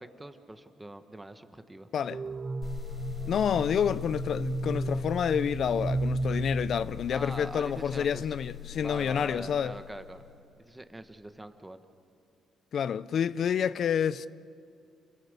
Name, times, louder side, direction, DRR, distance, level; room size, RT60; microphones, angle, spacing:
voice 1, 0.0-1.9 7.1-8.3 8.7-10.2 10.6-11.8, right 1 dB, 10° right, 1.3 m, -43 dB
sound 1, 2.1-7.5, right 2 dB, 35° right, 0.7 m, -34 dB
sound 2, 2.6-10.4, left 13 dB, 35° left, 3.7 m, -42 dB
voice 2, 3.3-9.7 12.7-14.3, left 8 dB, 60° left, 0.5 m, -28 dB
28.0 x 17.0 x 8.2 m
cardioid pair, 90°, 0 cm